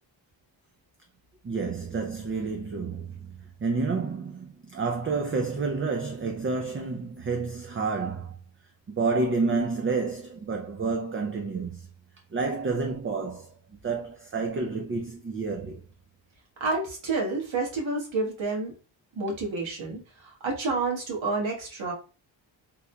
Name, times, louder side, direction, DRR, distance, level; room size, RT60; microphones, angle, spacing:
voice 1, 1.4-8.3 8.9-11.9 12.3-13.5 13.8-15.8, right 4 dB, 30° right, 0.4 m, -29 dB
voice 2, 16.6-18.7 19.1-21.9, right 3 dB, 70° right, 1.5 m, -29 dB
3.6 x 2.8 x 2.2 m
wide cardioid pair, 110°, 48 cm